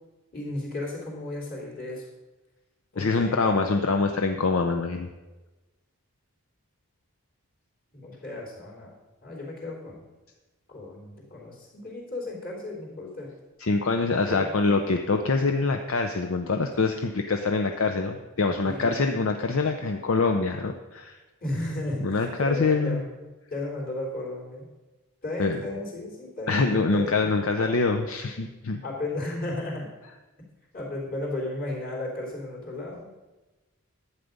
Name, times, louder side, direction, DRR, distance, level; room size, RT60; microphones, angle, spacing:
voice 1, 0.3-2.1 2.9-3.6 7.9-8.9 9.2-10.0 10.7-13.3 14.1-14.5 16.4-16.5 18.6-18.9 21.4-23.1 23.5-24.7 25.2-27.7 28.8-29.9 30.7-33.1, left 2 dB, 40° left, -3 dB, 3.4 m, -34 dB
voice 2, 3.0-5.1 13.6-21.2 22.0-23.0 25.4-25.6 26.5-28.8, left 3 dB, 65° left, 5 dB, 0.6 m, -25 dB
11.5 x 8.3 x 5.2 m, 1.1 s
head